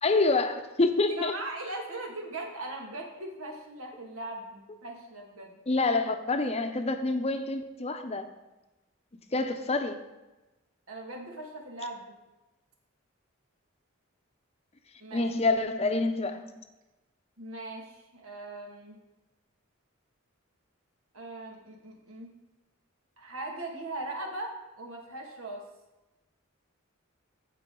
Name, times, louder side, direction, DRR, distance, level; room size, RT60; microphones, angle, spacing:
voice 1, 0.0-1.3 5.7-8.3 9.3-10.0 15.1-16.6, left 3 dB, 30° left, 7 dB, 0.7 m, -27 dB
voice 2, 1.2-5.6 9.3-9.5 10.9-12.0 15.0-15.2 17.4-19.0 21.1-22.3 23.2-25.6, right 2 dB, 85° right, 1 dB, 2.0 m, -39 dB
15.0 x 5.1 x 3.8 m, 1.1 s
head